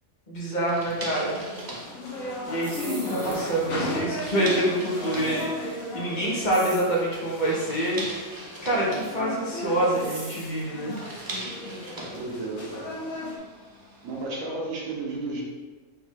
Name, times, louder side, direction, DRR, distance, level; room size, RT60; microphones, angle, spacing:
voice 1, 0.3-1.4 2.4-8.0 8.6-11.0, right 1 dB, 35° left, -5 dB, 1.1 m, -26 dB
sound 1, 0.6-14.2, right 2 dB, 30° right, 0.4 m, -42 dB
sound 2, 1.2-13.4, left 1 dB, 90° left, 1.4 m, -35 dB
sound 3, 2.6-3.7 6.5-7.0 9.9-10.6, right 2 dB, 70° right, 1.5 m, -42 dB
voice 2, 12.1-13.0 14.0-15.4, right 2 dB, 85° right, -3 dB, 1.4 m, -33 dB
4.6 x 2.8 x 3.7 m, 1.3 s
omnidirectional pair, 1.4 m